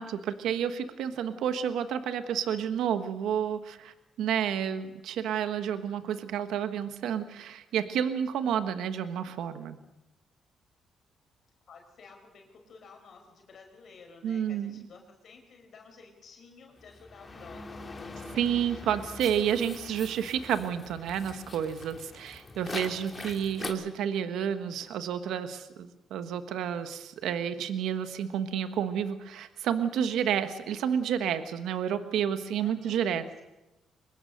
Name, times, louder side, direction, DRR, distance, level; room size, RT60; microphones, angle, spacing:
voice 1, 0.0-9.8 14.2-14.8 18.3-33.2, right 8 dB, 80° right, 10 dB, 1.4 m, -30 dB
voice 2, 11.7-18.0 32.6-33.4, left 4 dB, 60° left, 3 dB, 5.2 m, -53 dB
sound 1, 16.8-23.7, left 3 dB, 30° left, 3.2 m, -43 dB
24.0 x 21.0 x 6.6 m, 1.0 s
cardioid pair, 90°, 0 cm